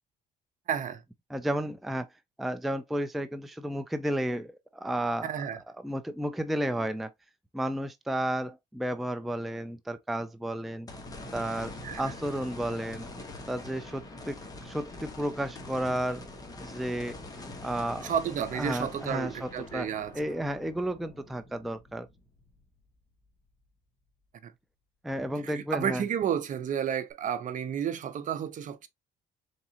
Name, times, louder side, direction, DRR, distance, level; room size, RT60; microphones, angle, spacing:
voice 1, 0.7-1.0 5.2-5.6 11.8-12.1 18.0-20.1 24.4-24.5 25.4-28.9, right 8 dB, 50° right, 0.7 m, -31 dB
voice 2, 1.3-2.1 2.4-5.4 5.8-7.1 7.5-10.9 11.3-13.1 13.5-14.4 14.6-16.3 16.6-17.2 17.6-18.1 18.5-19.9 20.1-22.1 25.0-26.0, right 1 dB, ahead, 0.4 m, -32 dB
sound 1, 10.9-23.2 23.7-23.8 27.1-27.2, left 2 dB, 20° left, 1.2 m, -44 dB
4.0 x 3.6 x 2.8 m
cardioid pair, 110°, 17 cm